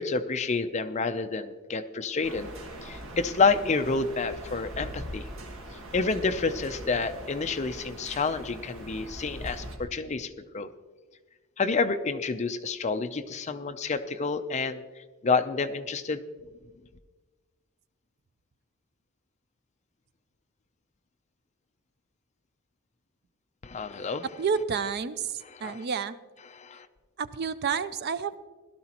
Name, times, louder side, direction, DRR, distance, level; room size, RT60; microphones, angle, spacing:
voice 1, 0.0-2.5 2.8-5.2 5.9-10.7 11.6-14.8 15.2-16.2 23.6-24.2 25.6-25.7 26.6-26.9, left 4 dB, 30° left, 9 dB, 0.5 m, -29 dB
sound 1, 2.2-9.8, equal, 65° right, 1.6 m, -41 dB
voice 2, 24.2-26.2 27.2-28.4, right 6 dB, 45° right, 14 dB, 0.4 m, -30 dB
16.5 x 12.0 x 2.9 m, 1.3 s
head